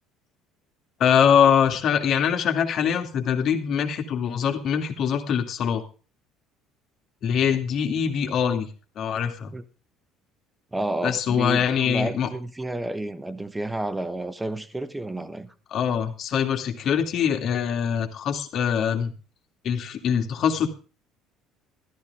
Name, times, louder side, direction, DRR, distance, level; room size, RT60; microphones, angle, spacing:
voice 1, 1.0-5.8 7.2-8.7 9.0-9.5 11.0-12.3 15.7-19.1 19.6-20.7, left 8 dB, 50° left, 2.7 m, -23 dB
voice 2, 10.7-15.5, right 1 dB, 10° right, 1.7 m, -31 dB
14.0 x 14.0 x 3.7 m
figure-of-eight pair, 60°, 0 cm